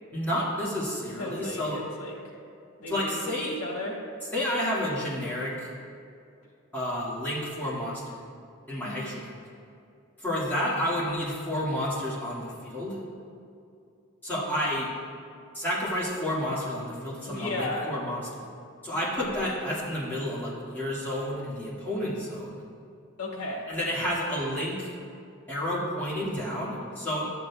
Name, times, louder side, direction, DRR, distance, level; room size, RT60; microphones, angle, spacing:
voice 1, 0.1-1.8 2.9-3.6 4.3-5.7 6.7-8.0 8.7-9.3 10.2-13.0 14.2-14.9 15.5-18.5 18.8-22.6 23.7-24.9 25.5-27.3, equal, 10° left, -9 dB, 1.8 m, -30 dB
voice 2, 1.2-2.2 2.8-4.0 8.8-9.2 17.2-17.9 23.2-23.7, left 2 dB, 85° left, -2 dB, 1.7 m, -35 dB
12.0 x 7.6 x 2.3 m, 2.5 s
head